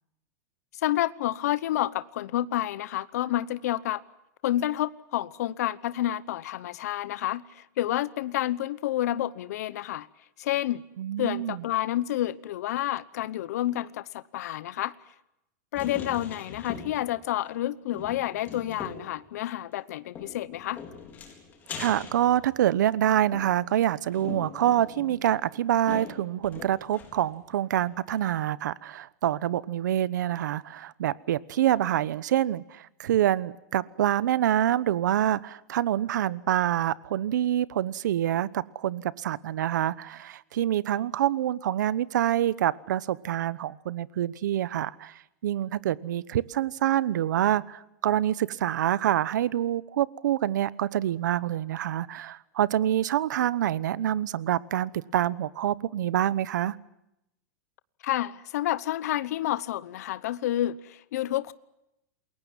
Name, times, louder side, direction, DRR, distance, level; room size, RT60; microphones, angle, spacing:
voice 1, 0.8-4.0 4.4-10.1 10.4-10.8 11.2-14.9 15.7-20.8 58.0-61.5, left 13 dB, 60° left, 1.0 m, -29 dB
voice 2, 11.0-11.6 21.8-45.1 45.4-56.8, right 11 dB, 85° right, 1.1 m, -26 dB
sound 1, 15.8-17.2 17.5-17.6 17.9-19.2 20.2-22.9 23.3-27.3 27.7-27.8 28.1-28.2, left 5 dB, 20° left, 4.3 m, -42 dB
28.5 x 21.5 x 7.4 m
supercardioid pair, 175°, 10 cm